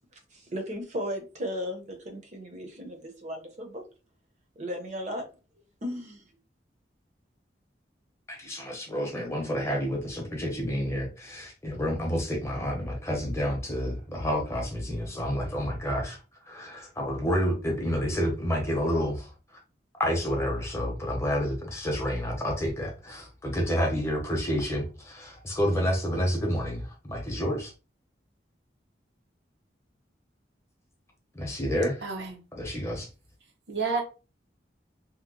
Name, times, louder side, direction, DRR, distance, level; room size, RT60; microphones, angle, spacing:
voice 1, 0.3-3.8 4.6-5.3 5.8-6.2, equal, 40° right, 0.7 m, -35 dB
voice 2, 8.3-16.2 16.5-19.3 20.0-27.7 31.3-32.0 32.6-33.1, equal, 15° left, 0.8 m, -29 dB
voice 3, 32.0-32.4 33.7-34.0, right 4 dB, 75° right, 0.8 m, -30 dB
2.8 x 2.1 x 3.7 m
head